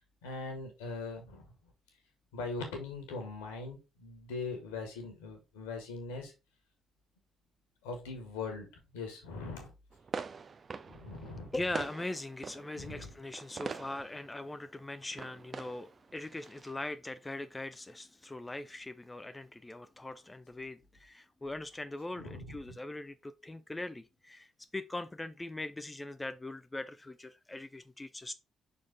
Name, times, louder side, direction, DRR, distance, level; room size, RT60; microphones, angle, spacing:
voice 1, 0.2-1.4 2.3-6.3 7.8-8.7 8.9-9.7 10.9-11.5 12.8-13.1 22.2-22.8, left 3 dB, 70° left, 1.6 m, -41 dB
sound 1, 9.9-16.7, right 5 dB, 40° right, 0.6 m, -44 dB
voice 2, 11.5-24.5 24.7-28.3, left 2 dB, 15° left, 0.5 m, -41 dB
6.0 x 4.2 x 3.7 m
figure-of-eight pair, 40°, 0 cm